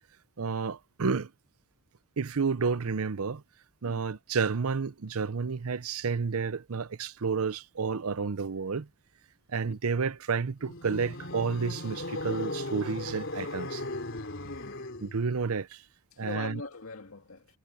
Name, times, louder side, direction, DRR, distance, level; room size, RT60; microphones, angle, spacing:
voice 1, 0.4-1.3 2.2-3.4 3.8-8.9 9.5-13.8 15.0-15.8 16.2-16.6, right 5 dB, 85° right, 0.7 m, -30 dB
sound 1, 10.6-15.3, left 2 dB, 55° left, 4.0 m, -37 dB
voice 2, 14.4-15.1 16.1-17.5, left 3 dB, 75° left, 2.1 m, -42 dB
head